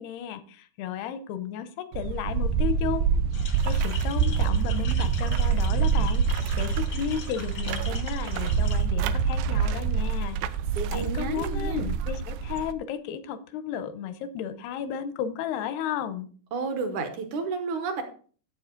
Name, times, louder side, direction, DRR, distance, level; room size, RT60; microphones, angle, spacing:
voice 1, 0.0-3.1 3.6-10.4 10.9-16.3, left 8 dB, 85° left, 12 dB, 2.7 m, -33 dB
sound 1, 1.9-12.7, right 6 dB, 85° right, 2.1 m, -26 dB
sound 2, 3.3-8.8, left 5 dB, 70° left, 1.2 m, -41 dB
voice 2, 10.8-11.9 16.5-18.0, right 4 dB, 65° right, 6 dB, 2.0 m, -31 dB
11.5 x 7.8 x 3.8 m, 0.42 s
omnidirectional pair, 4.7 m